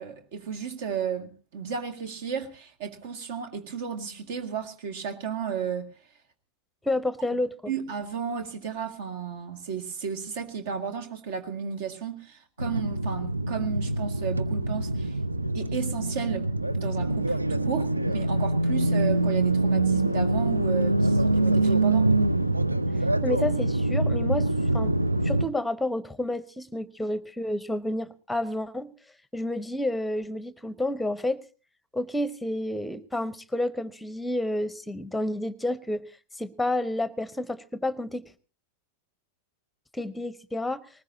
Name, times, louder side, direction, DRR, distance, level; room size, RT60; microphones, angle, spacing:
voice 1, 0.0-5.9 7.3-7.4 7.7-15.2 15.5-16.5 16.7-22.1, right 7 dB, 55° right, 2.0 m, -33 dB
voice 2, 6.8-7.7 23.2-24.9 25.2-28.9 29.3-31.4 31.9-36.0 36.4-38.2 39.9-40.8, left 1 dB, 5° left, 0.9 m, -30 dB
sound 1, 12.6-25.5, right 2 dB, 85° right, 0.7 m, -25 dB
20.5 x 19.5 x 2.8 m
figure-of-eight pair, 90°, 0 cm